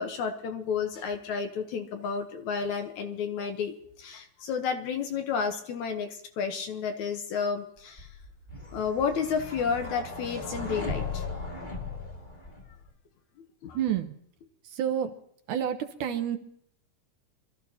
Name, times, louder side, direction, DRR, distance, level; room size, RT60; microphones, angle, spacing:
voice 1, 0.0-8.1 8.7-11.2 13.6-13.8, left 6 dB, 65° left, 6 dB, 2.1 m, -31 dB
sound 1, 8.0-12.9, left 3 dB, 20° left, 1.7 m, -37 dB
voice 2, 13.7-14.1 14.6-15.1 15.5-16.4, right 9 dB, 70° right, 8 dB, 2.2 m, -29 dB
25.5 x 13.5 x 2.8 m, 0.69 s
omnidirectional pair, 3.9 m